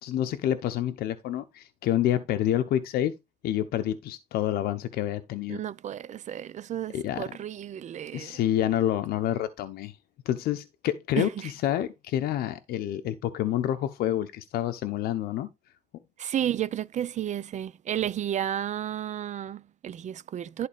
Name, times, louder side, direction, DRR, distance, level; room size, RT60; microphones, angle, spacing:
voice 1, 0.0-3.1 3.4-5.6 6.9-7.2 8.1-10.0 10.3-15.5, left 12 dB, 80° left, 0.9 m, -28 dB
voice 2, 5.5-8.4 11.2-11.5 16.2-20.7, right 10 dB, 50° right, 0.6 m, -32 dB
11.5 x 4.1 x 5.1 m
cardioid pair, 105°, 16 cm